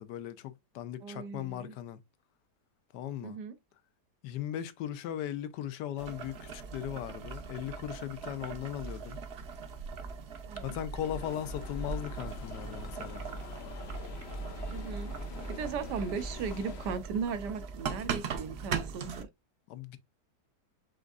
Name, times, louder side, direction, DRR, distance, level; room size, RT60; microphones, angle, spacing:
voice 1, 0.0-2.0 2.9-3.3 4.2-9.2 10.6-13.3 19.7-20.0, left 11 dB, 85° left, 1.3 m, -38 dB
voice 2, 1.0-1.8 3.2-3.6 10.5-10.8 14.7-15.1 15.5-19.3, right 6 dB, 85° right, 1.3 m, -37 dB
Boiling, 6.0-19.2, right 6 dB, 55° right, 0.7 m, -41 dB
sound 1, 11.0-17.0, left 1 dB, 65° left, 0.6 m, -41 dB
5.2 x 3.4 x 2.4 m
omnidirectional pair, 1.8 m